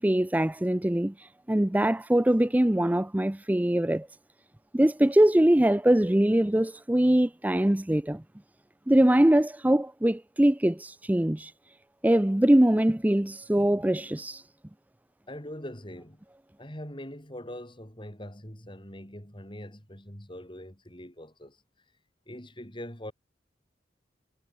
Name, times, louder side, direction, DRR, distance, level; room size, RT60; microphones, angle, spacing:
voice 1, 0.0-4.1 4.7-8.2 8.9-11.5 12.0-14.4, right 1 dB, 10° right, 0.4 m, -23 dB
voice 2, 15.3-16.2 16.6-21.6 22.3-23.1, left 1 dB, 25° left, 6.4 m, -42 dB
head